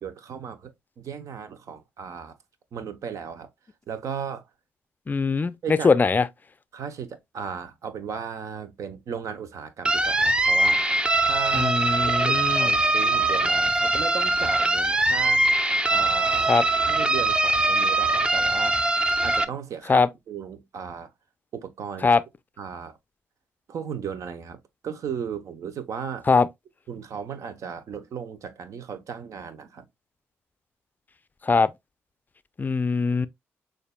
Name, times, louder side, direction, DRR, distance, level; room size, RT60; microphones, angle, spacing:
voice 1, 0.0-2.4 2.7-3.5 3.9-4.4 5.6-5.9 6.7-10.8 11.2-11.8 12.1-15.5 15.9-16.6 16.9-18.8 19.2-21.1 21.5-22.1 22.6-23.0 23.7-26.3 26.9-29.8, right 7 dB, 65° right, 0.8 m, -36 dB
voice 2, 5.1-6.3 11.5-12.7 16.5-16.6 19.9-20.1 22.0-22.2 26.3-26.5 31.4-31.7 32.6-33.3, left 4 dB, 30° left, 0.4 m, -21 dB
sound 1, 9.8-19.4, right 2 dB, 15° right, 0.6 m, -22 dB
6.5 x 2.6 x 2.2 m
supercardioid pair, 55°, 6 cm